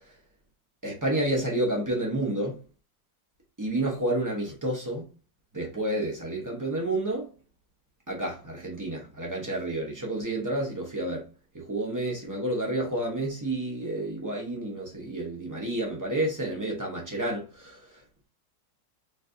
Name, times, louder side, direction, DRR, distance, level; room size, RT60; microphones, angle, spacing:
voice 1, 0.8-2.5 3.6-5.0 5.5-7.3 8.1-11.2 11.7-17.7, right 1 dB, 30° right, 0.3 m, -30 dB
4.2 x 3.3 x 2.6 m
omnidirectional pair, 1.9 m